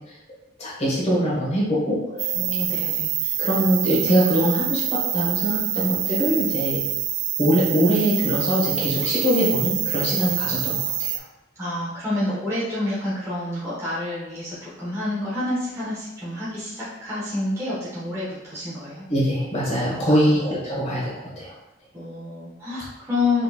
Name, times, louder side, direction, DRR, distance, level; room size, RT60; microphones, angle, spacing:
voice 1, 0.6-2.0 3.4-6.8 7.4-11.2 19.1-21.5, equal, 30° left, -6 dB, 1.2 m, -23 dB
voice 2, 2.1-3.1 11.5-19.0 20.1-20.4 20.9-21.0 21.9-23.4, left 2 dB, 15° right, -10 dB, 0.9 m, -28 dB
sound 1, 2.2-11.2, right 11 dB, 65° right, 0.3 m, -26 dB
3.9 x 3.0 x 2.4 m, 0.93 s
head